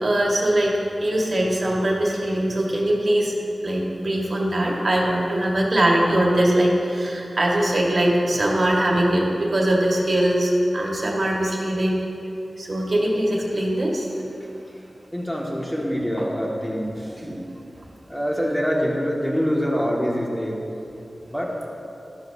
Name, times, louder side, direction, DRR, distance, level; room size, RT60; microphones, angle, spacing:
voice 1, 0.0-3.3 3.6-12.0 12.6-14.1 17.2-17.4, right 1 dB, 55° right, -2 dB, 2.0 m, -21 dB
voice 2, 15.1-17.2 18.1-20.6 21.3-21.7, equal, 10° left, -3 dB, 2.2 m, -25 dB
13.0 x 12.0 x 2.9 m, 2.8 s
cardioid pair, 50°, 0 cm